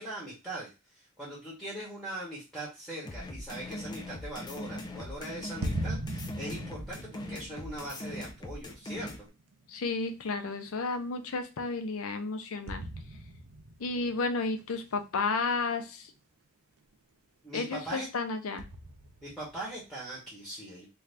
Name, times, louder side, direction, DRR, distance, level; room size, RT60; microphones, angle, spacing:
voice 1, 0.0-9.3 17.4-18.1 19.2-20.9, right 1 dB, ahead, -6 dB, 0.9 m, -41 dB
sound 1, 3.0-9.2, left 1 dB, 20° left, 0.4 m, -41 dB
sound 2, 5.6-10.4 10.9-11.0 12.7-14.9 15.6-15.7 18.6-20.0, right 1 dB, 80° right, 0.6 m, -40 dB
voice 2, 9.7-12.8 13.8-16.1 17.5-18.6, left 3 dB, 75° left, 7 dB, 0.6 m, -32 dB
2.6 x 2.3 x 3.2 m, 0.28 s
head